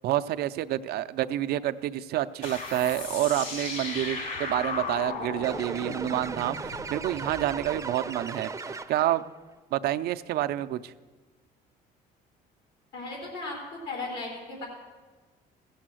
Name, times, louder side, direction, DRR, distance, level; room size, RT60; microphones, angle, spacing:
voice 1, 0.0-8.5 8.9-9.2 9.7-10.9, right 13 dB, 70° right, 11 dB, 0.5 m, -28 dB
sound 1, 2.4-7.7, left 3 dB, 55° left, 2.7 m, -36 dB
sound 2, 5.4-9.2, right 4 dB, 15° right, 0.6 m, -37 dB
voice 2, 12.9-13.5 13.8-14.7, left 3 dB, 75° left, -1 dB, 3.6 m, -36 dB
15.5 x 7.1 x 7.5 m, 1.4 s
cardioid pair, 110°, 17 cm